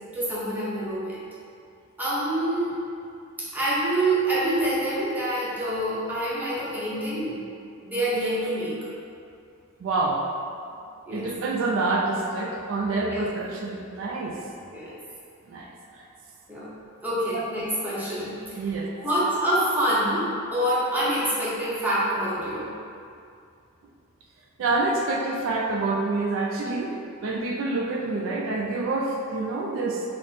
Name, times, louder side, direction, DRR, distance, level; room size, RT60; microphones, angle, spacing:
voice 1, 0.1-1.2 2.0-2.8 3.4-7.4 7.8-8.7 11.1-11.3 13.0-13.2 14.7-15.0 16.5-16.7 17.0-18.3 18.6-20.2 20.5-22.7, right 1 dB, 10° right, -10 dB, 0.8 m, -26 dB
voice 2, 9.8-10.2 11.1-14.4 15.5-15.7 16.0-16.1 17.3-17.5 18.6-18.9 24.6-27.0 27.2-30.0, right 3 dB, 80° right, 0 dB, 0.3 m, -27 dB
3.4 x 2.1 x 4.0 m, 2.5 s
head